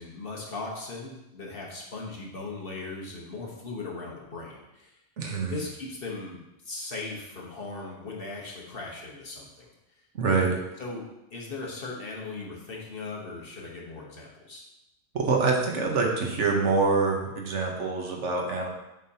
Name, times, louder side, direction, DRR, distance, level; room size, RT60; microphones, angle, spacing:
voice 1, 0.0-4.9 5.4-9.7 10.8-11.0 11.3-14.6, left 3 dB, 50° left, -2 dB, 1.3 m, -38 dB
voice 2, 5.2-5.6 10.1-10.6 15.1-18.7, right 4 dB, 75° right, 0 dB, 1.3 m, -25 dB
7.4 x 5.2 x 2.8 m, 0.92 s
omnidirectional pair, 1.3 m